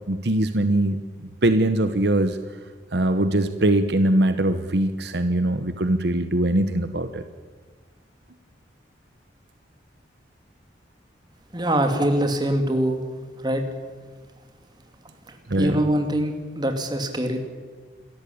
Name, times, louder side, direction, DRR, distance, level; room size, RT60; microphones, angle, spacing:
voice 1, 0.1-1.0 1.4-2.4 2.9-7.2 15.5-15.8, right 1 dB, 65° right, 10 dB, 1.1 m, -21 dB
voice 2, 11.5-13.0 13.4-13.7 15.3-17.5, right 1 dB, 25° right, 5 dB, 2.5 m, -24 dB
27.5 x 14.0 x 8.6 m, 1.5 s
head